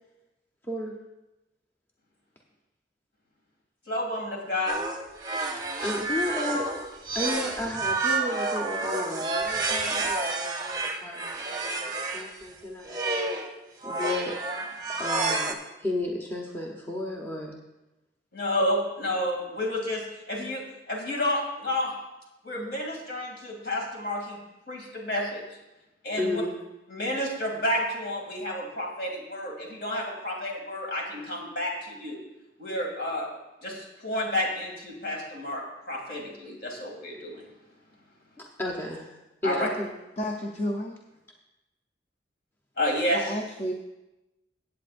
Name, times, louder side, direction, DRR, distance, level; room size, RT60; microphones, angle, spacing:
voice 1, 3.9-4.8 18.3-21.9 22.4-24.4 24.7-25.4 26.0-26.4 26.9-32.2 32.6-33.3 33.6-37.4 39.4-39.7 42.8-43.2, left 1 dB, 60° left, -1 dB, 2.7 m, -30 dB
sound 1, 4.7-12.3 12.9-13.5 13.8-15.5, right 3 dB, 20° right, 0.8 m, -29 dB
voice 2, 5.8-6.7 7.1-13.1 13.8-14.4 15.0-15.5 15.8-17.6 26.2-26.6 38.4-39.9, left 1 dB, 10° left, -2 dB, 0.9 m, -33 dB
voice 3, 40.2-41.0 43.1-43.7, equal, 35° left, 1 dB, 0.6 m, -31 dB
15.5 x 8.6 x 2.6 m, 0.99 s
head